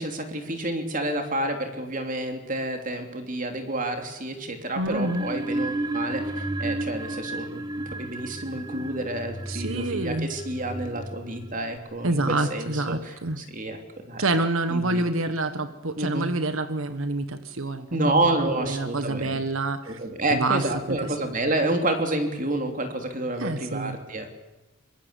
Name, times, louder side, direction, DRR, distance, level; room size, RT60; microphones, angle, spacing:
voice 1, 0.0-13.8 14.1-14.2 14.7-15.0 16.0-16.3 17.9-19.4 19.9-24.3, right 1 dB, 40° right, 5 dB, 3.2 m, -29 dB
voice 2, 4.7-5.3 9.5-10.3 12.0-13.4 14.2-17.9 18.2-20.0 20.3-21.2 23.4-24.0, right 2 dB, 75° right, 10 dB, 1.5 m, -27 dB
sound 1, 4.8-11.8, right 2 dB, 20° right, 1.7 m, -33 dB
25.0 x 22.0 x 8.3 m, 1.0 s
head